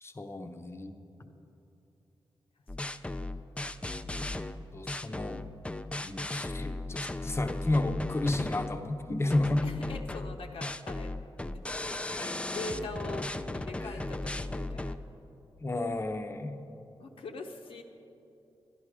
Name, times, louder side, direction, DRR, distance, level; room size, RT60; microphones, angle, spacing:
voice 1, 0.0-0.9 4.7-5.4 6.0-9.7 12.2-12.3 13.8-13.9 15.6-16.6, left 2 dB, 30° left, 7 dB, 0.8 m, -31 dB
voice 2, 1.3-1.6 3.0-3.1 9.6-11.2 11.5-11.6 12.1-13.3 13.5-15.0 17.0-17.8, left 2 dB, 75° left, 1 dB, 0.8 m, -42 dB
sound 1, 2.7-8.8 9.3-15.0, left 2 dB, 10° left, 0.4 m, -36 dB
11.5 x 10.5 x 4.9 m, 2.8 s
cardioid pair, 70°, 9 cm